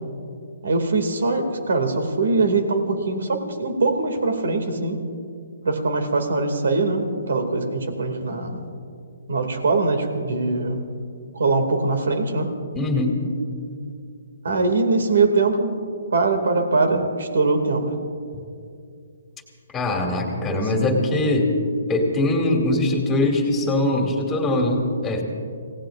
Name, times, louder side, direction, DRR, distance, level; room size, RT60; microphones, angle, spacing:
voice 1, 0.6-5.0 5.6-8.6 9.3-10.8 11.3-12.5 14.4-15.8 16.1-17.9 20.5-20.9, right 3 dB, 75° right, 6 dB, 2.4 m, -22 dB
voice 2, 12.7-13.2 19.7-21.5 21.9-25.2, left 2 dB, 10° left, 1 dB, 2.4 m, -22 dB
27.5 x 18.0 x 2.6 m, 2.4 s
hypercardioid pair, 160°, 0 cm